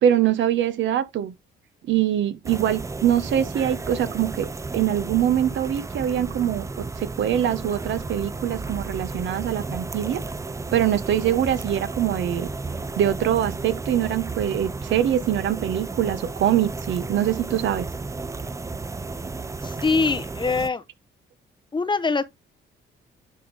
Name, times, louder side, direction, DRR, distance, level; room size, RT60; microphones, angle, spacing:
voice 1, 0.0-1.3 1.9-10.2 10.7-12.5 12.9-17.9, right 10 dB, 70° right, 0.9 m, -23 dB
sound 1, 2.4-20.7, right 3 dB, 15° right, 0.4 m, -33 dB
voice 2, 19.6-20.8 21.7-22.2, left 4 dB, 25° left, 0.7 m, -23 dB
10.0 x 3.6 x 3.2 m
cardioid pair, 90°, 20 cm